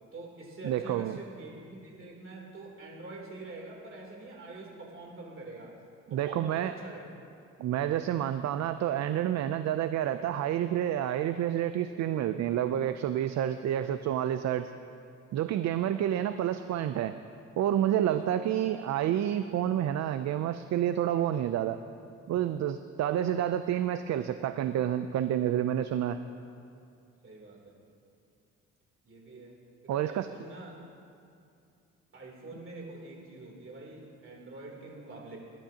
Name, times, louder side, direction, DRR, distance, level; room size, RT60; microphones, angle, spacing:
voice 1, 0.1-5.8 6.1-7.1 8.3-8.5 15.8-16.0 18.1-18.4 27.2-27.8 29.0-29.5 29.8-30.8 32.1-35.4, right 2 dB, 45° right, -1 dB, 3.2 m, -45 dB
voice 2, 0.6-1.2 6.1-6.7 7.6-14.7 15.3-17.1 17.6-21.8 22.3-26.2 29.9-30.3, right 11 dB, 65° right, 10 dB, 0.5 m, -29 dB
20.0 x 12.0 x 2.9 m, 2.5 s
cardioid pair, 90°, 30 cm